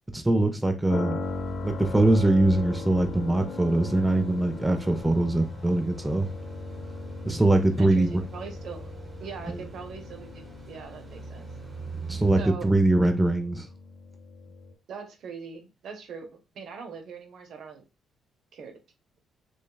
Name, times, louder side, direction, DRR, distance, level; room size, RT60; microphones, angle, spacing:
voice 1, 0.1-1.2 1.6-6.3 7.2-8.2 9.5-9.6 12.1-13.7, right 2 dB, 10° right, 0.5 m, -22 dB
sound 1, 0.9-14.7, left 3 dB, 65° left, 1.0 m, -39 dB
sound 2, 1.2-12.5, right 3 dB, 30° right, 1.7 m, -43 dB
voice 2, 7.8-8.9 9.2-11.5 12.4-12.7 14.9-17.8 18.5-18.8, right 5 dB, 70° right, 0.8 m, -41 dB
6.2 x 2.3 x 2.3 m
cardioid pair, 90°, 0 cm